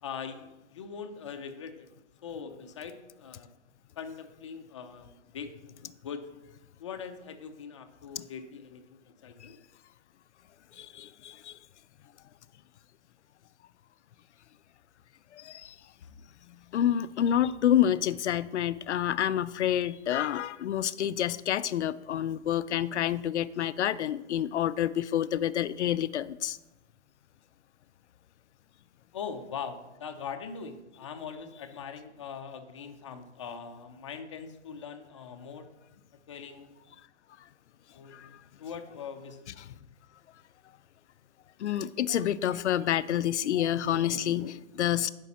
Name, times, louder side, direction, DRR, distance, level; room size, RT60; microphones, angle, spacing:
voice 1, 0.0-1.9 2.2-3.5 4.0-6.2 6.8-9.6 16.0-16.1 29.1-35.7 36.3-36.7 37.9-38.3 38.6-39.8, left 6 dB, 25° left, 6 dB, 0.5 m, -42 dB
voice 2, 10.7-11.6 15.3-15.8 16.5-26.6 38.1-38.4 39.6-39.7 41.6-45.1, left 10 dB, 75° left, 16 dB, 0.5 m, -28 dB
11.0 x 5.2 x 4.2 m, 0.99 s
hypercardioid pair, 160°, 35 cm